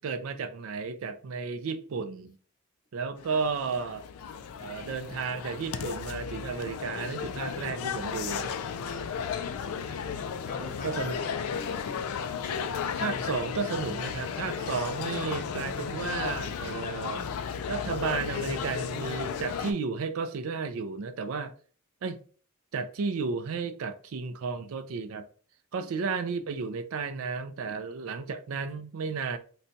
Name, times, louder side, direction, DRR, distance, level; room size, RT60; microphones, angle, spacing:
voice 1, 0.0-2.4 2.9-4.0 4.6-8.6 10.8-11.2 13.0-17.3 17.7-21.5 22.0-22.2 22.7-25.3 25.7-29.4, right 5 dB, 70° right, 0.4 m, -33 dB
sound 1, 3.2-19.7, left 7 dB, 80° left, 0.3 m, -34 dB
voice 2, 9.3-9.9 10.4-12.1 25.8-25.9 27.7-27.8, left 3 dB, 40° left, 0.6 m, -45 dB
3.9 x 2.2 x 2.6 m
head